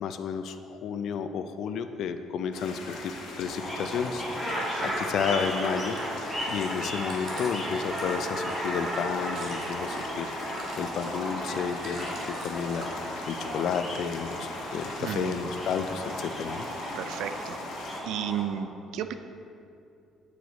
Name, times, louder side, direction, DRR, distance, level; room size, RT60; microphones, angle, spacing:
voice 1, 0.0-3.1 3.4-6.0 6.5-16.7, left 6 dB, 55° left, 9 dB, 0.4 m, -32 dB
sound 1, 2.5-18.0, left 2 dB, 85° left, 1.1 m, -41 dB
sound 2, 3.4-18.4, equal, 5° right, 1.3 m, -35 dB
voice 2, 4.6-5.0 15.0-15.5 16.9-17.6 18.0-19.1, right 9 dB, 80° right, 9 dB, 0.3 m, -33 dB
Chewing mastication, 6.1-13.1 13.4-14.1 14.4-15.3 15.8-15.9, right 2 dB, 40° right, 1.1 m, -46 dB
8.0 x 4.8 x 4.0 m, 2.6 s
cardioid pair, 165°, 0 cm